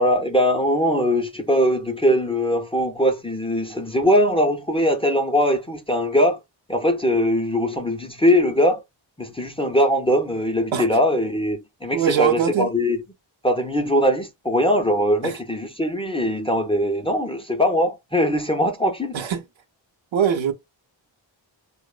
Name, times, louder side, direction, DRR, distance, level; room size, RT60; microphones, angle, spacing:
voice 1, 0.0-6.4 6.7-8.8 9.2-13.0 13.4-19.1, equal, 15° left, 0.4 m, -21 dB
voice 2, 11.9-12.7 15.2-15.4 19.1-19.4 20.1-20.5, right 8 dB, 75° right, 0.7 m, -22 dB
2.9 x 2.1 x 2.2 m
wide cardioid pair, 75°, 47 cm